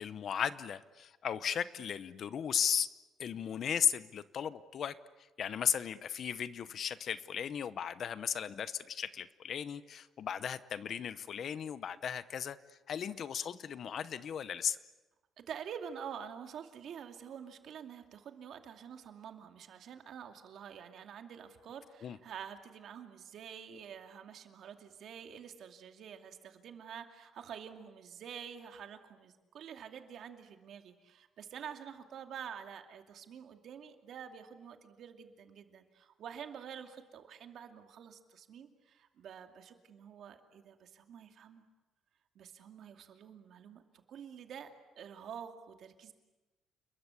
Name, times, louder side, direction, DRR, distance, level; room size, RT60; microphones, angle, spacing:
voice 1, 0.0-2.9 3.2-5.0 5.4-12.6 12.9-14.8 22.0-22.2, left 8 dB, 45° left, 15 dB, 0.9 m, -36 dB
voice 2, 15.4-41.6 42.3-46.1, right 8 dB, 55° right, 6 dB, 2.5 m, -48 dB
29.5 x 21.5 x 8.4 m, 1.1 s
cardioid pair, 165°, 0 cm